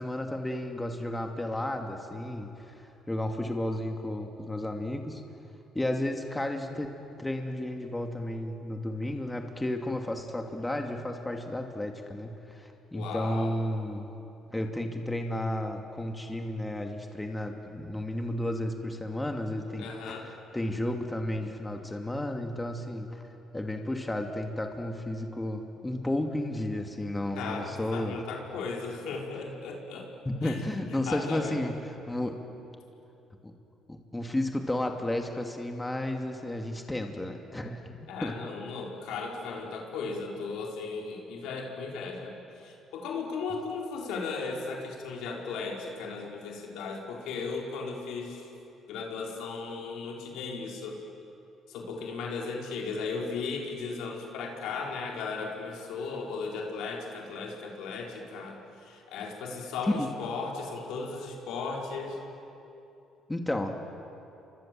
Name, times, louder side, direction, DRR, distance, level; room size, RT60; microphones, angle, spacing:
voice 1, 0.0-5.2 5.7-6.9 7.2-14.1 14.5-23.2 23.5-28.2 30.2-31.8 32.1-32.4 33.4-33.5 33.9-38.3 59.9-60.1 63.3-63.7, left 1 dB, 15° left, 3 dB, 2.6 m, -33 dB
voice 2, 12.9-13.5 19.8-20.3 27.3-30.1 30.4-31.6 38.1-48.5 48.9-51.0 51.7-62.2, left 4 dB, 80° left, 0 dB, 4.6 m, -36 dB
29.5 x 24.5 x 7.8 m, 2.8 s
supercardioid pair, 70°, 0 cm